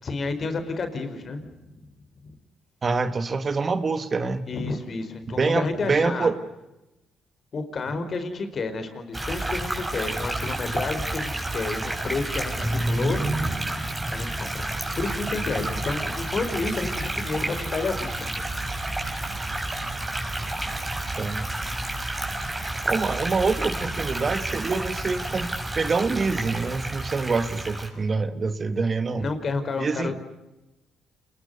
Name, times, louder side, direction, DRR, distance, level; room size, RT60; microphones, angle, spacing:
voice 1, 0.0-1.4 1.7-1.8 2.2-2.4 4.4-6.3 7.5-13.2 14.1-17.4 17.7-18.3 29.2-30.3, left 3 dB, 45° left, 9 dB, 4.6 m, -30 dB
voice 2, 2.8-4.5 5.4-6.4 21.2-21.5 22.9-29.3 29.8-30.1, right 4 dB, 35° right, 10 dB, 1.7 m, -26 dB
sound 1, 9.1-27.9, right 1 dB, 15° right, 6.1 m, -30 dB
28.5 x 21.0 x 6.8 m, 0.97 s
cardioid pair, 90°, 0 cm